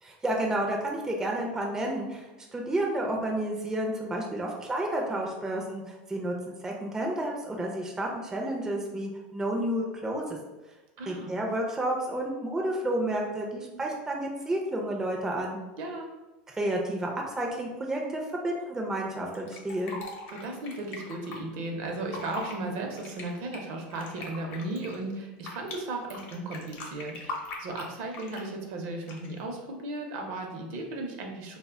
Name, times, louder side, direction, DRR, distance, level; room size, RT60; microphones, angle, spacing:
voice 1, 0.0-10.4 11.1-15.6 16.6-20.0, right 1 dB, 10° right, -1 dB, 0.3 m, -31 dB
voice 2, 11.0-11.3 15.8-16.1 20.3-31.6, right 2 dB, 60° right, 2 dB, 0.6 m, -36 dB
Fill (with liquid), 19.3-21.4 22.0-22.6 22.9-25.8 26.1-28.5 29.0-29.4, left 3 dB, 50° left, 0.6 m, -41 dB
2.1 x 2.1 x 3.5 m, 1.1 s
supercardioid pair, 125°, 5 cm